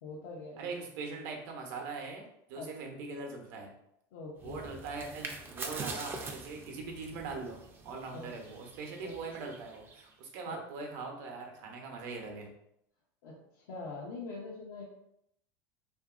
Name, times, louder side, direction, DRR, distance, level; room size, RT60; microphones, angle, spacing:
voice 1, 0.0-0.8 2.5-2.7 4.1-4.6 8.1-8.4 9.0-9.1 10.4-10.6 13.2-14.8, left 3 dB, 85° left, -5 dB, 0.7 m, -43 dB
voice 2, 0.6-2.2 2.5-3.7 4.4-12.5, right 4 dB, 65° right, 2 dB, 0.7 m, -41 dB
sound 1, 4.4-10.1, right 3 dB, 20° right, 0.4 m, -44 dB
2.8 x 2.5 x 2.4 m, 0.77 s
supercardioid pair, 125°, 10 cm